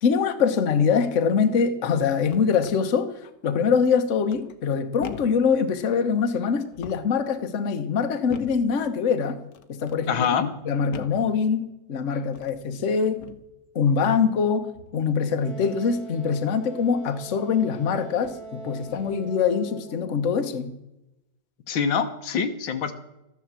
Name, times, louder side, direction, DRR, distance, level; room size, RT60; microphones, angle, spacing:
voice 1, 0.0-9.4 9.7-10.3 10.6-13.2 13.7-20.7, left 6 dB, 45° left, 8 dB, 1.2 m, -24 dB
sound 1, 2.3-2.8 4.3-4.7 5.0-5.5 6.6-7.2 8.3-8.7 9.5-10.0 10.9-11.3 12.3-12.6 13.2-13.5 14.7-15.1 17.2-17.3 18.1-18.5 18.9-19.3, left 7 dB, 65° left, 1.4 m, -42 dB
voice 2, 10.1-10.5 21.7-22.9, left 6 dB, 85° left, 8 dB, 1.9 m, -25 dB
Wind instrument woodwind instrument, 15.4-20.1, right 1 dB, 85° right, 3.0 m, -42 dB
13.5 x 10.5 x 7.4 m, 0.91 s
omnidirectional pair, 2.1 m